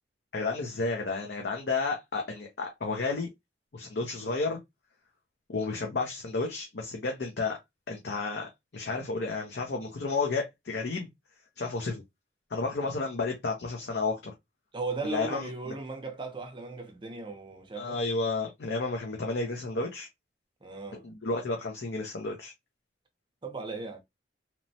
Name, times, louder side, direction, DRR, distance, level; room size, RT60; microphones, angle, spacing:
voice 1, 0.3-3.3 3.7-4.6 5.5-7.6 7.9-11.1 11.6-12.0 12.5-14.3 15.0-15.7 17.8-20.1 21.0-22.5, left 3 dB, 65° left, 0.6 m, -32 dB
voice 2, 14.7-18.0 20.6-21.0 23.4-24.0, right 3 dB, 25° right, 0.6 m, -37 dB
3.0 x 2.1 x 2.6 m
head